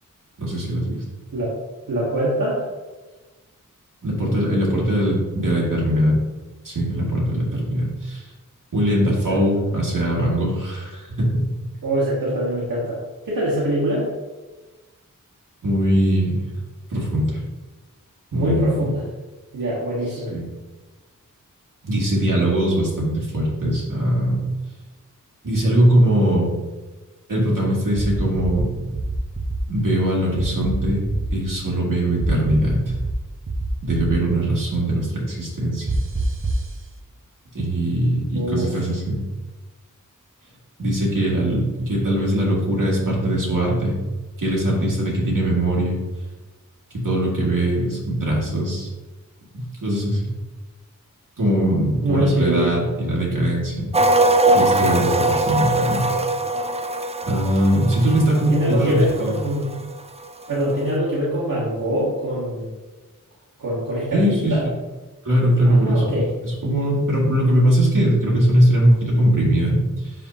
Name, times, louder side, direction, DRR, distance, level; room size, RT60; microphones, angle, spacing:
voice 1, 0.4-1.0 4.0-6.1 6.6-8.3 8.7-11.4 15.6-16.4 16.9-17.4 18.3-18.8 20.3-20.4 21.8-24.4 25.4-26.5 27.3-28.7 29.7-31.0 31.3-32.9 33.8-35.9 37.5-39.2 40.8-44.0 44.4-46.0 46.9-48.9 49.5-50.2 51.4-53.9 54.5-56.1 57.2-59.3 64.1-64.5 65.3-66.2 66.4-70.1, right 1 dB, 70° right, -5 dB, 2.1 m, -21 dB
voice 2, 1.9-2.7 9.3-9.4 11.8-13.0 13.2-14.1 18.3-19.0 19.5-20.3 38.3-38.7 52.0-52.8 58.1-58.2 58.5-59.8 60.5-62.7 63.6-64.6 65.6-66.3, right 1 dB, 90° right, -8 dB, 1.4 m, -23 dB
sound 1, 27.9-28.6 28.9-29.6 30.3-31.3 32.2-33.1 33.5-34.1 35.9-36.7, right 3 dB, 40° right, 0.9 m, -26 dB
sound 2, 53.9-59.9 60.2-60.4, right 2 dB, 20° right, 0.4 m, -21 dB
10.5 x 3.6 x 2.8 m, 1.2 s
wide cardioid pair, 65°, 33 cm